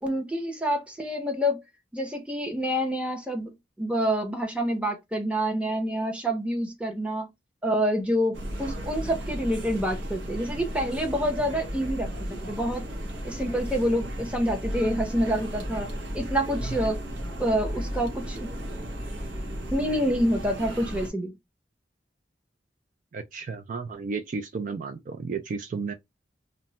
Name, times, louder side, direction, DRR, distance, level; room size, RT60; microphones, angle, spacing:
voice 1, 0.0-1.6 1.9-3.5 3.8-7.3 7.6-12.1 12.4-12.8 13.2-15.9 16.1-17.0 17.4-18.5 19.7-21.3, equal, 5° right, 0.7 m, -27 dB
sound 1, 8.3-21.1, equal, 80° right, 0.7 m, -34 dB
voice 2, 23.1-25.9, right 4 dB, 45° right, 0.3 m, -33 dB
2.2 x 2.1 x 3.8 m
head